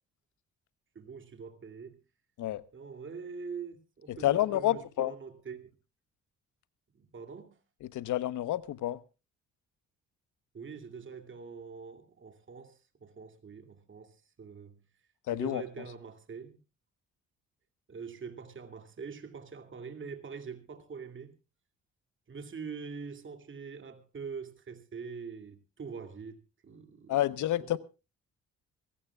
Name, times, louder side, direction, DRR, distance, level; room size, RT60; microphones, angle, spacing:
voice 1, 0.9-2.0 2.7-5.7 6.9-7.6 10.5-14.8 15.3-16.6 17.9-21.4 22.3-27.2 27.6-27.8, right 5 dB, 40° right, 2.5 m, -44 dB
voice 2, 4.1-5.1 7.8-9.0 15.3-15.6 27.1-27.8, left 14 dB, 80° left, 1.0 m, -29 dB
24.0 x 16.0 x 2.3 m
cardioid pair, 90°, 30 cm